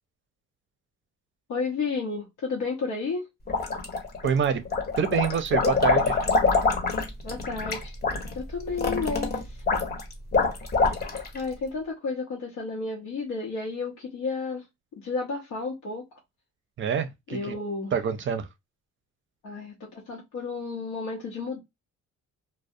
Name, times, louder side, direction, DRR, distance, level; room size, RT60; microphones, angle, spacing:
voice 1, 1.5-3.3 7.2-7.9 8.3-9.6 11.3-14.7 15.0-16.0 17.3-17.9 19.4-21.6, left 4 dB, 85° left, 0.8 m, -32 dB
sound 1, 3.5-4.3 4.7-11.4, left 4 dB, 30° left, 0.8 m, -25 dB
voice 2, 4.2-4.6 5.0-6.2 16.8-17.5 17.9-18.5, right 7 dB, 40° right, 0.5 m, -26 dB
2.3 x 2.0 x 2.6 m
cardioid pair, 90°, 30 cm